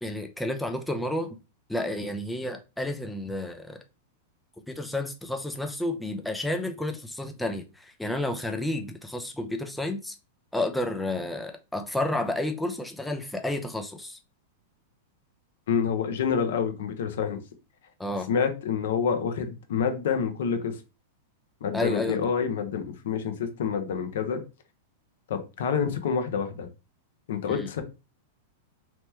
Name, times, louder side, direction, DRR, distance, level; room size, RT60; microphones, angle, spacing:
voice 1, 0.0-1.4 1.7-3.8 4.7-10.2 10.5-14.2 18.0-18.3 21.7-22.3 27.5-27.7, left 1 dB, 5° left, 0.4 m, -31 dB
voice 2, 15.7-17.4 18.3-20.8 21.6-24.4 25.3-26.7 27.3-27.8, left 6 dB, 75° left, 0.7 m, -27 dB
2.9 x 2.1 x 3.2 m
hypercardioid pair, 125°, 0 cm